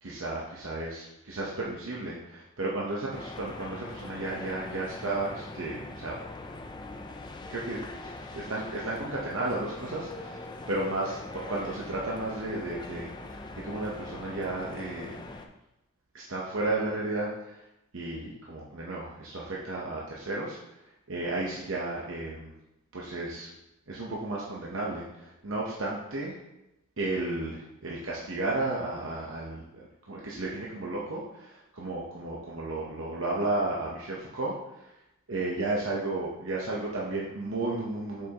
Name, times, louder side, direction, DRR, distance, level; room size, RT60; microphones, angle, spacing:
voice 1, 0.0-6.1 7.5-15.2 16.1-17.6 17.9-20.6 21.1-22.5 22.9-23.5 23.9-26.3 27.0-34.9 35.3-38.3, right 2 dB, 65° right, -4 dB, 0.9 m, -33 dB
sound 1, 3.1-15.5, left 2 dB, 20° left, 0.5 m, -42 dB
7.6 x 5.4 x 2.9 m, 0.91 s
head